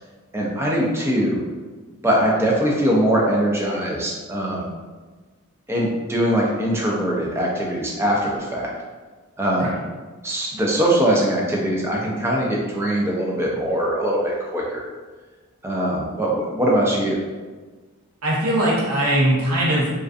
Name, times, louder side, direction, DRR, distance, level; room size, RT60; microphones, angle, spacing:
voice 1, 0.3-1.4 2.0-4.7 5.7-8.7 9.4-9.7 10.2-14.8 15.6-17.2, right 1 dB, 10° right, -3 dB, 0.3 m, -22 dB
voice 2, 18.2-19.9, right 1 dB, 85° right, -6 dB, 0.9 m, -20 dB
2.4 x 2.4 x 2.4 m, 1.3 s
head